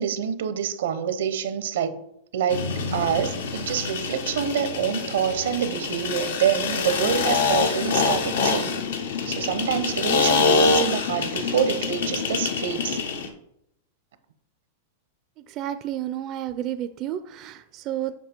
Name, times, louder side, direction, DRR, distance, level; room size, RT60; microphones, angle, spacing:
voice 1, 0.0-2.0 2.3-8.9 9.3-13.0, right 8 dB, 80° right, 11 dB, 0.8 m, -26 dB
sound 1, 2.5-13.3, left 4 dB, 85° left, 1.0 m, -26 dB
sound 2, 7.0-13.0, left 9 dB, 65° left, 0.5 m, -34 dB
voice 2, 15.6-18.1, right 12 dB, 35° right, 11 dB, 0.4 m, -31 dB
7.4 x 5.3 x 4.4 m, 0.78 s
supercardioid pair, 140°, 0 cm